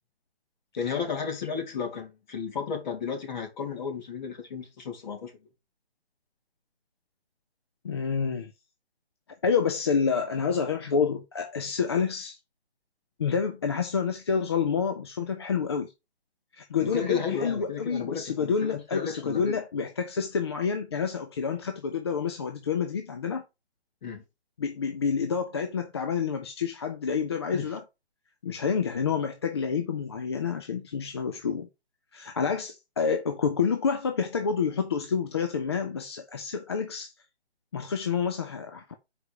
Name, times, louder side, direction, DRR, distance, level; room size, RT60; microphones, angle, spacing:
voice 1, 0.8-5.3 16.8-19.6 24.0-24.2 27.5-27.7, left 6 dB, 45° left, 3.7 m, -33 dB
voice 2, 7.8-8.5 9.4-12.4 13.2-15.9 16.5-23.4 24.6-27.8 28.4-31.7 32.1-37.1 37.7-39.0, left 6 dB, 25° left, 0.5 m, -28 dB
6.1 x 4.9 x 6.8 m
hypercardioid pair, 150°, 32 cm